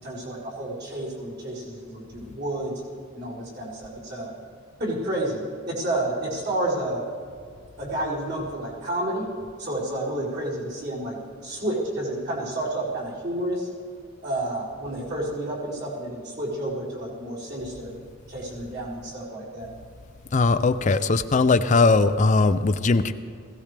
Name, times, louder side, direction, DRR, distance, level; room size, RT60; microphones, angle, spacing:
voice 1, 0.0-2.7 3.1-4.3 4.8-7.0 7.8-9.3 9.6-11.2 11.4-13.7 14.2-17.9 18.3-19.7, right 1 dB, 50° right, -7 dB, 4.6 m, -30 dB
voice 2, 20.3-23.1, left 3 dB, 35° left, 12 dB, 0.5 m, -19 dB
20.5 x 16.5 x 3.4 m, 2.2 s
head